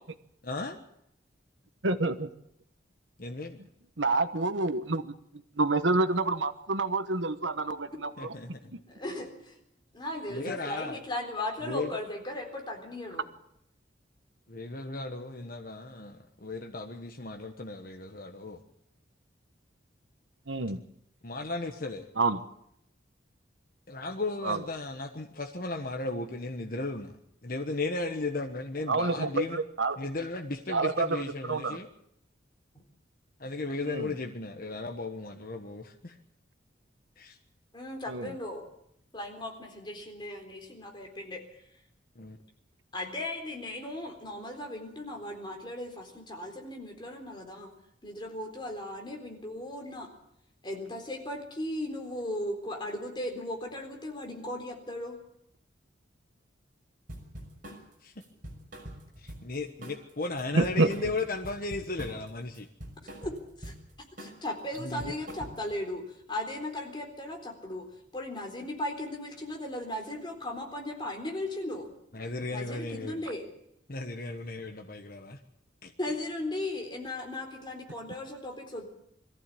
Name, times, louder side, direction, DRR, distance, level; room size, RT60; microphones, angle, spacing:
voice 1, 0.4-0.8 3.2-3.6 8.2-8.6 10.3-11.0 11.6-11.9 14.5-18.6 21.2-22.1 23.9-27.1 27.4-29.6 30.0-31.9 33.4-36.1 37.2-37.4 42.2-42.4 58.0-58.1 59.2-62.7 64.8-65.1 72.1-73.2 73.9-75.4 75.8-75.9, left 3 dB, 50° left, 4 dB, 1.3 m, -35 dB
voice 2, 1.8-2.3 4.0-5.1 5.6-7.9 20.5-20.8 22.2-22.4 24.5-24.6 28.9-30.0 30.7-31.2 31.5-31.8 33.9-34.1 38.1-38.3 60.5-60.9, right 3 dB, 80° right, 10 dB, 1.2 m, -27 dB
voice 3, 8.6-9.6 9.9-13.3 37.7-38.6 39.1-41.4 42.9-47.7 48.0-50.1 50.6-55.2 63.2-63.3 63.6-63.7 64.2-67.9 68.1-71.9 72.5-73.4 76.0-78.8, left 1 dB, 25° left, 2 dB, 4.0 m, -37 dB
sound 1, 57.1-57.8 58.2-59.6 59.8-60.1 60.4-62.3 62.5-63.8 64.2-64.5 64.7-65.8, equal, 45° right, 6.0 m, -44 dB
22.5 x 15.0 x 8.6 m, 0.75 s
head